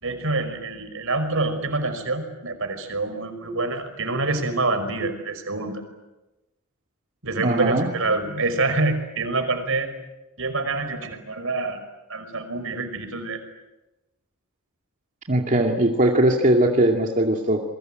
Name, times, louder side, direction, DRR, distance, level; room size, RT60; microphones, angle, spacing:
voice 1, 0.0-5.8 7.2-9.9 10.4-11.8 12.1-13.4, right 3 dB, 65° right, 8 dB, 5.4 m, -26 dB
voice 2, 7.4-7.9 15.3-17.6, right 1 dB, 35° right, 1 dB, 2.3 m, -20 dB
29.0 x 22.5 x 9.1 m, 1.0 s
head